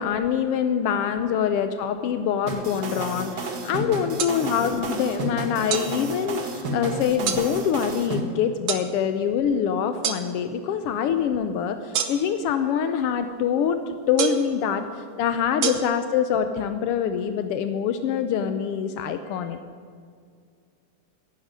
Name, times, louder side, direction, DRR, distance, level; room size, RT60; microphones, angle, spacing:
voice 1, 0.0-14.9 15.2-19.6, left 8 dB, 85° left, 8 dB, 1.3 m, -25 dB
sound 1, 2.5-8.2, right 2 dB, 45° right, 1.4 m, -31 dB
sound 2, 4.2-4.4 5.7-5.9 7.3-7.4 8.7-8.9 10.0-10.2 11.9-12.4 14.2-14.5 15.6-15.7, right 9 dB, 70° right, 1.1 m, -25 dB
11.0 x 11.0 x 9.7 m, 2.1 s
omnidirectional pair, 3.5 m